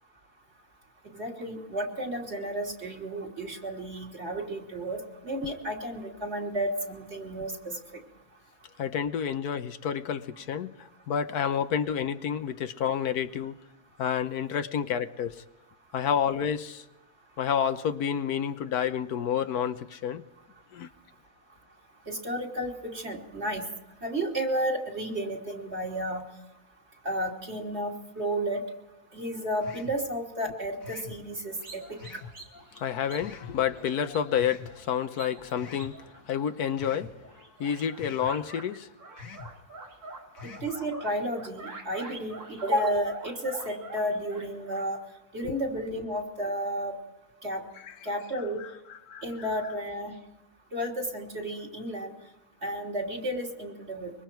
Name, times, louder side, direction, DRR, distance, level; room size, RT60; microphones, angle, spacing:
voice 1, 1.1-7.7 22.1-23.7 24.0-26.2 27.1-28.6 29.1-32.0 40.6-45.0 45.3-47.0 47.4-47.6 48.0-48.6 49.2-50.1 50.7-52.1 52.6-54.1, right 1 dB, 45° right, 3.5 m, -32 dB
voice 2, 8.8-13.5 14.0-15.4 15.9-16.8 17.4-20.2 20.7-20.9 32.7-37.1 37.6-38.9 45.4-45.5 47.8-47.9 48.9-49.2, left 8 dB, 90° left, 1.4 m, -29 dB
sound 1, 29.6-30.0 30.8-31.2 32.0-32.4 33.2-33.6 34.3-34.7 35.6-35.9 36.8-37.1 38.0-38.3 39.2-39.5 40.3-40.7, left 6 dB, 60° left, 1.9 m, -44 dB
sound 2, 31.6-36.9 37.2-38.7 39.0-44.8, right 2 dB, 80° right, 3.4 m, -46 dB
24.5 x 23.5 x 4.6 m
omnidirectional pair, 1.6 m